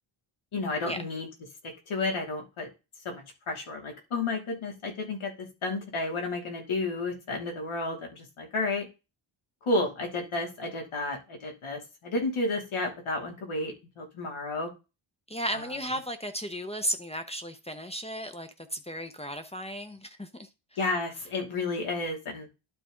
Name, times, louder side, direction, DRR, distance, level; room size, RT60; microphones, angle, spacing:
voice 1, 0.5-1.3 1.9-2.7 3.0-8.9 9.6-14.7 15.5-15.8 20.8-22.5, left 2 dB, 85° left, 2.8 m, -32 dB
voice 2, 15.3-20.5, equal, 15° left, 0.6 m, -35 dB
11.5 x 4.1 x 3.8 m
wide cardioid pair, 170°, 48 cm